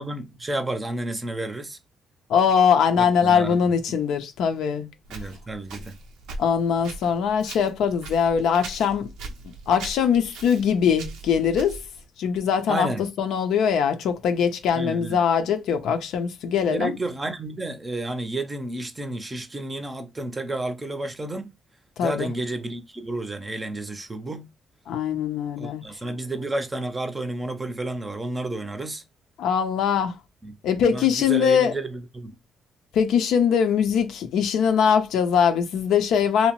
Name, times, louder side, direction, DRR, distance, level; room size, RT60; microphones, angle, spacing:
voice 1, 0.0-1.8 2.9-3.7 5.1-6.0 12.7-13.0 14.7-15.2 16.7-21.5 22.0-24.5 25.6-29.0 30.4-30.5 30.8-32.3, right 2 dB, 20° right, 0.5 m, -31 dB
voice 2, 2.3-4.9 6.4-9.1 9.7-11.8 12.2-12.9 13.2-16.9 22.0-22.3 24.9-25.8 29.4-30.1 30.6-31.7 32.9-36.5, left 7 dB, 80° left, 0.5 m, -22 dB
Walk footsteps, 5.0-12.0, right 3 dB, 90° right, 0.5 m, -41 dB
2.7 x 2.0 x 2.9 m
cardioid pair, 90°, 0 cm